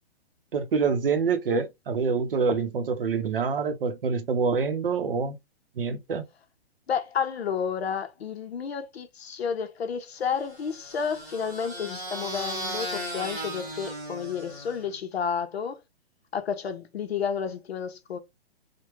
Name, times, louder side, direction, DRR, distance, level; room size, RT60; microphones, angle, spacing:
voice 1, 0.5-5.4 5.8-6.2, right 5 dB, 55° right, 0.7 m, -26 dB
voice 2, 6.9-15.8 16.3-18.2, left 7 dB, 65° left, 0.8 m, -31 dB
sound 1, 10.4-15.0, right 1 dB, 15° right, 0.9 m, -36 dB
3.4 x 2.2 x 3.0 m
hypercardioid pair, 175°, 33 cm